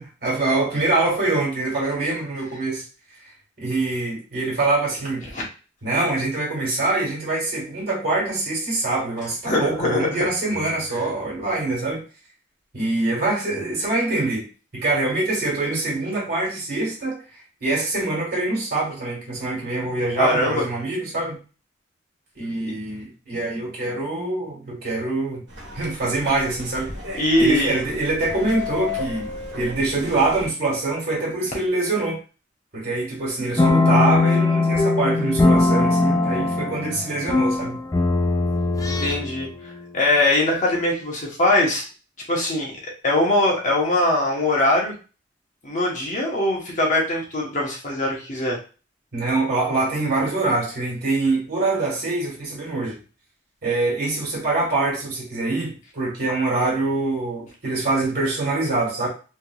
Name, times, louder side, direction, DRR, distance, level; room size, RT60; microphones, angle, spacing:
voice 1, 0.0-2.8 3.6-5.3 5.8-12.0 12.7-14.4 14.7-17.2 17.6-21.4 22.4-25.4 25.7-26.9 27.4-29.3 29.6-32.2 32.7-37.8 49.1-53.0 53.6-59.1, right 2 dB, 55° right, -4 dB, 1.8 m, -24 dB
voice 2, 9.5-10.3 20.2-20.6 22.6-22.7 27.2-27.8 38.9-41.8 42.3-42.7 43.0-44.9 45.6-48.6, left 1 dB, 40° left, -2 dB, 1.0 m, -21 dB
sound 1, 25.5-30.5, left 4 dB, 70° right, 1.3 m, -34 dB
sound 2, 33.6-39.5, left 3 dB, 20° left, 0.3 m, -20 dB
3.4 x 2.9 x 2.3 m, 0.35 s
head